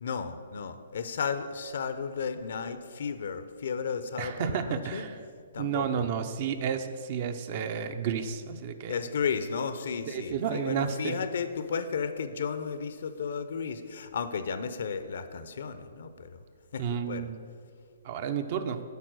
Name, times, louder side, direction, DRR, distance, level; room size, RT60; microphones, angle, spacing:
voice 1, 0.0-5.1 5.5-6.1 8.9-16.4 16.7-17.3, left 6 dB, 65° left, 11 dB, 0.6 m, -34 dB
voice 2, 4.2-5.2 5.6-8.9 10.1-11.2 16.8-17.4 18.0-18.8, right 7 dB, 45° right, 9 dB, 0.6 m, -31 dB
8.2 x 4.4 x 6.3 m, 2.2 s
hypercardioid pair, 145°, 0 cm